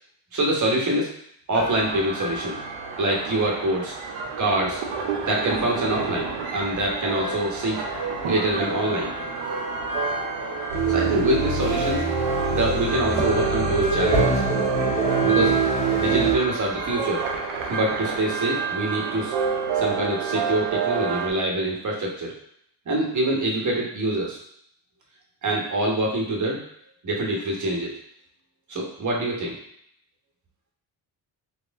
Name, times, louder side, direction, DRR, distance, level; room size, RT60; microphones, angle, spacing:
voice 1, 0.3-1.1 1.5-2.6 3.0-3.9 4.4-4.8 5.2-7.8 8.3-9.1 10.9-12.1 12.5-14.4 15.2-15.5 16.0-17.2 17.7-19.3 19.7-22.3 22.9-24.4 25.4-26.6 27.0-27.9 28.7-29.6, right 1 dB, 40° right, -2 dB, 1.3 m, -25 dB
sound 1, 1.5-21.3, right 4 dB, 90° right, 0.9 m, -29 dB
sound 2, 10.7-16.3, right 4 dB, 75° right, 1.5 m, -24 dB
4.3 x 2.4 x 3.6 m, 0.68 s
cardioid pair, 85°, 48 cm